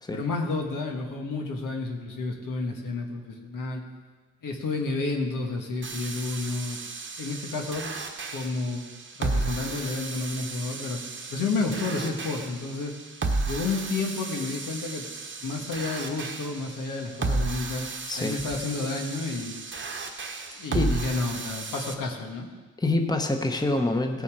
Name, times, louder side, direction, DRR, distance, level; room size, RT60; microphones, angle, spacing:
voice 1, 0.1-3.8 4.4-6.8 7.2-8.0 8.3-8.8 9.2-11.0 11.3-12.9 13.5-15.1 15.4-17.9 18.2-19.5 20.6-22.5, left 3 dB, 85° left, 2 dB, 1.6 m, -30 dB
sound 1, 5.8-21.9, right 3 dB, 40° right, 1.1 m, -34 dB
voice 2, 22.8-24.2, left 2 dB, 10° left, 4 dB, 1.0 m, -26 dB
16.5 x 7.0 x 4.8 m, 1.4 s
cardioid pair, 95°, 31 cm